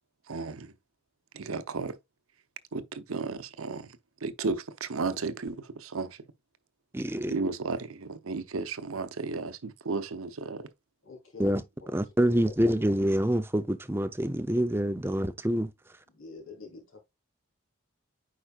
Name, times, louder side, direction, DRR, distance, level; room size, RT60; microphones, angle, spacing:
voice 1, 0.3-0.7 1.3-2.0 2.7-6.3 7.3-10.7, right 4 dB, 80° right, 0.8 m, -34 dB
voice 2, 6.9-7.3 11.4-11.6 11.9-15.7, equal, 10° right, 0.5 m, -26 dB
voice 3, 11.0-12.8 16.1-17.0, left 4 dB, 70° left, 3.4 m, -47 dB
9.1 x 5.0 x 2.4 m
head